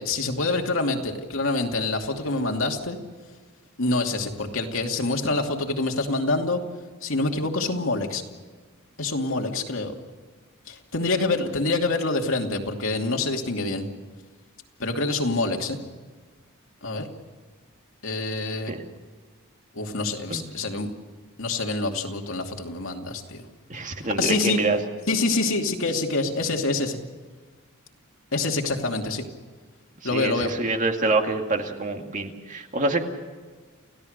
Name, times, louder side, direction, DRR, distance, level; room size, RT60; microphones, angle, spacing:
voice 1, 0.0-3.0 3.8-6.6 7.0-8.2 9.0-9.9 10.7-13.9 14.8-15.8 16.8-17.1 18.0-18.7 19.7-20.9 21.4-23.5 24.1-24.6 25.1-27.0 28.3-29.2 30.0-30.5, left 3 dB, 65° left, 2 dB, 2.7 m, -26 dB
voice 2, 23.7-24.8 30.1-33.0, right 3 dB, 35° right, 4 dB, 2.2 m, -26 dB
29.5 x 16.5 x 6.7 m, 1.4 s
head